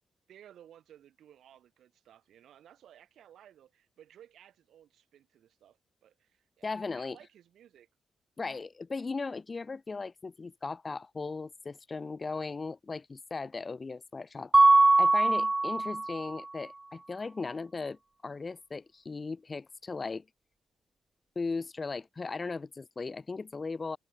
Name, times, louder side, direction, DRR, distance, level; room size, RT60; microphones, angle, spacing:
voice 1, 0.3-7.9 15.4-15.5, right 10 dB, 75° right, 7.6 m, -57 dB
voice 2, 6.6-7.2 8.4-14.5 15.0-18.0 18.2-20.2 21.4-24.0, left 4 dB, 40° left, 2.6 m, -37 dB
Mallet percussion, 14.5-16.3, right 2 dB, 25° right, 0.3 m, -22 dB
supercardioid pair, 45°, 0 cm